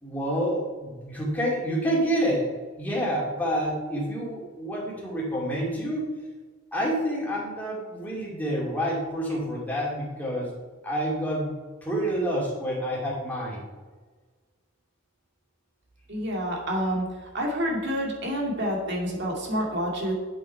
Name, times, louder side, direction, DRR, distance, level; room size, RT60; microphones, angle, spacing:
voice 1, 0.0-2.4 2.8-6.0 6.7-10.5 10.8-13.6, equal, 10° left, -5 dB, 2.7 m, -28 dB
voice 2, 16.1-17.1 17.3-20.1, equal, 60° right, -1 dB, 2.4 m, -28 dB
7.9 x 7.7 x 4.6 m, 1.4 s
head